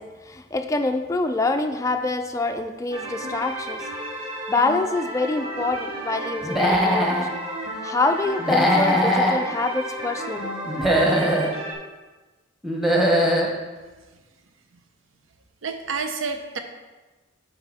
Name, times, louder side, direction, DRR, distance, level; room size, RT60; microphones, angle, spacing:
voice 1, 0.0-3.9 4.5-7.2 7.8-10.5, left 3 dB, 15° left, 6 dB, 0.3 m, -26 dB
sound 1, 2.9-11.7, right 1 dB, 30° right, 1.5 m, -33 dB
Human voice / Animal, 6.4-7.3 8.4-9.4 10.6-11.5 12.6-13.5, equal, ahead, 0.9 m, -20 dB
voice 2, 15.6-16.6, right 5 dB, 85° right, 7 dB, 0.7 m, -29 dB
8.8 x 5.6 x 3.5 m, 1.2 s
head